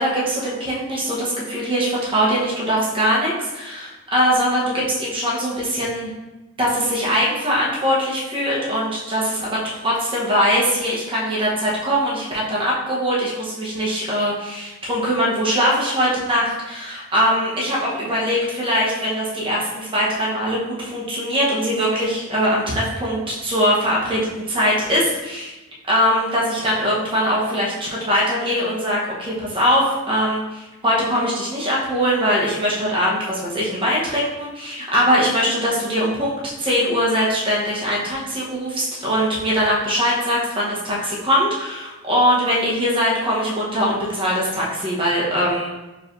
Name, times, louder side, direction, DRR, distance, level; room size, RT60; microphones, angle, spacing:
voice 1, 0.0-6.1 6.6-25.5 25.9-45.8, equal, 25° right, -6 dB, 1.0 m, -21 dB
4.8 x 3.2 x 2.6 m, 1.1 s
head